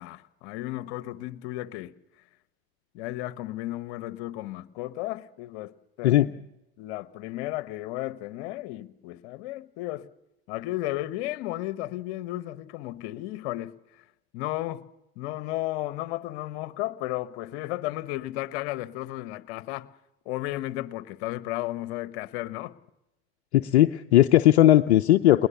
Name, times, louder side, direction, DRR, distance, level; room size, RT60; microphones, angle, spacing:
voice 1, 0.0-1.9 2.9-5.7 6.0-6.1 6.8-10.1 10.5-13.7 14.3-14.8 15.2-19.9 20.2-22.7, left 16 dB, 65° left, 1.2 m, -34 dB
voice 2, 23.5-25.5, left 14 dB, 80° left, 0.7 m, -18 dB
21.0 x 19.0 x 6.9 m
hypercardioid pair, 85°, 33 cm